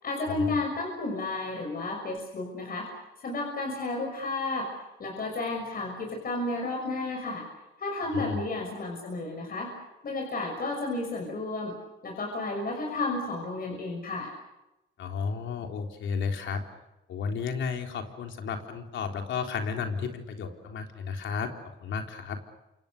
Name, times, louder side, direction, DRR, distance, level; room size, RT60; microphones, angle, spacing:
voice 1, 0.0-2.9 3.2-4.7 5.0-7.4 7.8-9.7 10.0-11.7 12.0-14.3, left 2 dB, 50° left, 1 dB, 6.5 m, -32 dB
voice 2, 15.0-16.6 17.1-21.5 21.8-22.4, left 5 dB, 70° left, 3 dB, 3.9 m, -33 dB
29.0 x 27.0 x 6.7 m, 0.96 s
cardioid pair, 90°, 20 cm